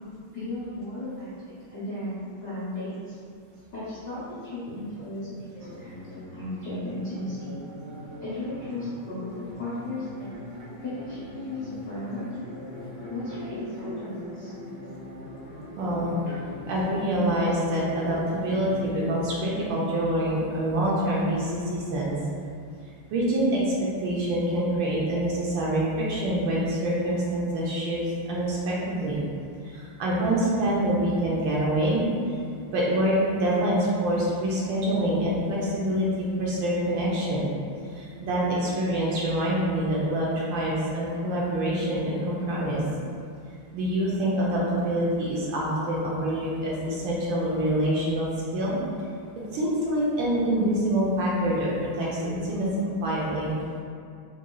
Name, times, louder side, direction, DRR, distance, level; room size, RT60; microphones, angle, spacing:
voice 1, 0.3-1.3 1.7-3.2 3.7-7.4 8.2-9.3 9.6-10.3 10.8-12.3 13.1-14.5 16.3-16.4, left 1 dB, 65° left, -12 dB, 0.7 m, -35 dB
sound 1, 5.6-19.7, left 1 dB, 40° right, 1.3 m, -40 dB
voice 2, 15.8-16.1 16.7-22.1 23.1-23.7 24.0-28.0 28.3-29.2 29.7-32.1 32.7-37.5 37.9-42.8 43.7-48.8 49.5-52.7 53.0-53.5, right 1 dB, 75° right, -6 dB, 1.2 m, -26 dB
4.7 x 2.7 x 2.2 m, 2.3 s
omnidirectional pair, 2.4 m